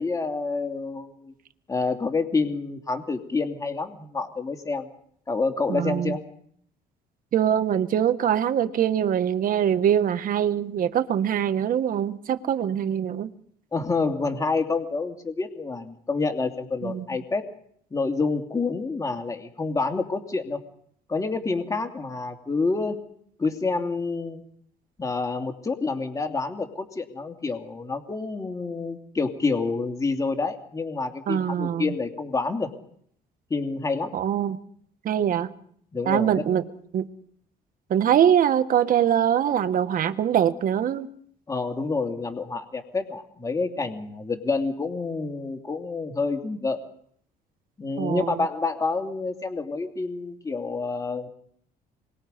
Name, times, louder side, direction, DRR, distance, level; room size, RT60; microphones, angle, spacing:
voice 1, 0.0-1.3 1.7-4.9 5.3-6.2 13.7-17.5 17.9-20.6 21.1-23.0 23.4-24.4 25.0-32.7 33.5-34.2 35.9-36.4 41.5-46.8 47.8-51.3, left 4 dB, 20° left, 2.6 m, -28 dB
voice 2, 5.7-6.2 7.3-13.3 16.8-17.0 31.3-32.0 34.1-34.6 35.0-35.5 36.0-36.7 36.9-37.1 37.9-41.1 48.0-48.5, right 9 dB, 55° right, 1.6 m, -23 dB
26.5 x 23.0 x 5.3 m
cardioid pair, 110°, 17 cm